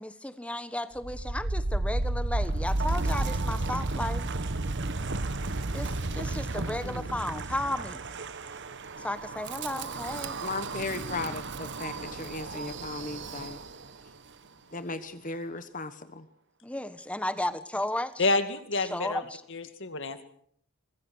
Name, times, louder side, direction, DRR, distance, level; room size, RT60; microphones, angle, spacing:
voice 1, 0.0-4.3 5.7-8.0 9.0-10.4 16.6-18.3 18.8-19.4, left 1 dB, 5° left, 12 dB, 1.2 m, -34 dB
Wind, 0.9-14.0, right 2 dB, 50° right, 1.2 m, -32 dB
voice 2, 10.4-13.6 14.7-16.3, left 3 dB, 35° left, 11 dB, 1.2 m, -36 dB
voice 3, 18.2-19.2 19.5-20.2, left 3 dB, 55° left, 9 dB, 2.2 m, -28 dB
25.0 x 21.0 x 6.4 m, 0.65 s
head